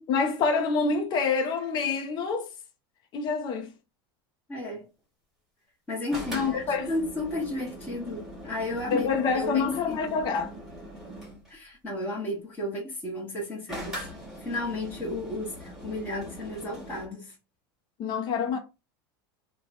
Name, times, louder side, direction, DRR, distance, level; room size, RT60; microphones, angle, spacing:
voice 1, 0.0-2.5 3.1-3.7 6.3-6.9 8.9-10.5 18.0-18.6, left 5 dB, 35° left, 0.7 m, -27 dB
voice 2, 4.5-4.9 5.9-10.0 11.5-14.1 14.4-17.3, left 1 dB, 15° left, 1.2 m, -33 dB
sound 1, 6.1-11.5 13.7-17.1, equal, 5° right, 1.5 m, -41 dB
2.9 x 2.3 x 4.1 m
supercardioid pair, 145°, 12 cm